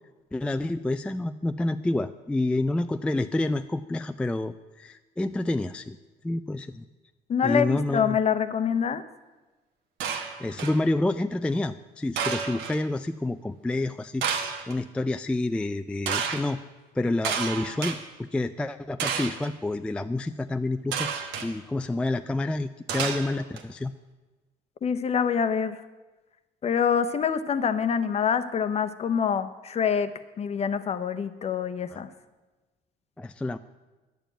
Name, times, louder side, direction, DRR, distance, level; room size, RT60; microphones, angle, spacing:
voice 1, 0.3-6.0 6.2-6.8 7.4-8.2 10.4-14.4 14.7-16.6 17.0-18.0 18.3-21.1 21.4-23.9 31.9-32.0 33.2-33.6, left 2 dB, 5° left, 9 dB, 0.3 m, -28 dB
voice 2, 7.3-9.0 24.8-25.8 26.6-30.1 30.4-32.1, left 7 dB, 40° left, 11 dB, 0.8 m, -25 dB
sound 1, 10.0-10.8 12.2-12.8 14.2-14.7 16.1-16.4 17.2-18.0 19.0-19.5 20.9-21.5 22.9-23.6, right 6 dB, 85° right, 1.3 m, -30 dB
10.5 x 7.1 x 9.0 m, 1.2 s
cardioid pair, 110°, 17 cm